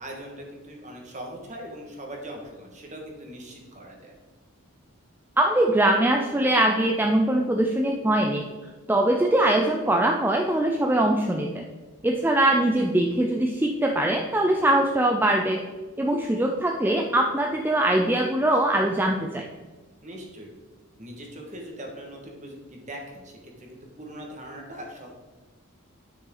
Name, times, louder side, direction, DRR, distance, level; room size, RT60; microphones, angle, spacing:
voice 1, 0.0-4.1 20.0-20.5 21.0-25.1, right 1 dB, 35° right, 0 dB, 1.7 m, -40 dB
voice 2, 5.4-8.4 8.9-11.7 12.0-15.6 16.0-19.4, right 1 dB, 10° right, 1 dB, 0.5 m, -22 dB
10.0 x 6.2 x 3.9 m, 1.3 s
head